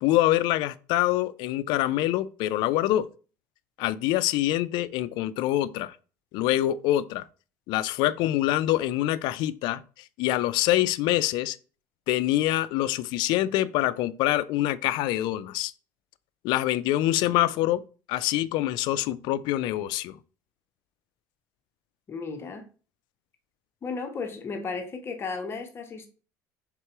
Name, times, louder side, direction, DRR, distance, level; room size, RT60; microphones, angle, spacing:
voice 1, 0.0-3.1 3.8-6.0 6.3-7.2 7.7-9.8 10.2-11.6 12.1-15.7 16.4-17.8 18.1-20.2, left 14 dB, 70° left, 0.4 m, -25 dB
voice 2, 22.1-22.6 23.8-26.1, left 4 dB, 30° left, 0.7 m, -34 dB
4.5 x 3.6 x 3.0 m
cardioid pair, 120°, 8 cm